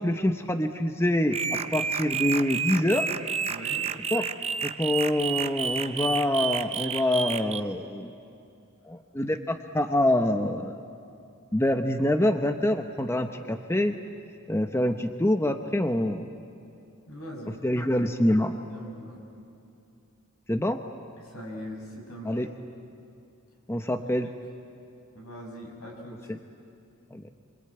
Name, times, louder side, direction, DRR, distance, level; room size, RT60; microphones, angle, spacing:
voice 1, 0.0-3.1 4.1-4.3 4.6-8.1 8.9-10.8 11.5-14.0 14.5-16.3 17.6-18.6 20.5-20.8 22.2-22.5 23.7-24.3 26.3-26.4 27.1-27.3, left 1 dB, 10° left, 6 dB, 0.8 m, -26 dB
sound 1, 1.3-7.6, right 6 dB, 30° right, 0.7 m, -30 dB
voice 2, 3.5-3.9 6.8-7.2 17.1-18.1 18.7-19.2 21.2-22.5 23.8-24.3 25.1-26.3, equal, 80° left, 0 dB, 6.9 m, -42 dB
27.0 x 25.0 x 8.8 m, 2.6 s
head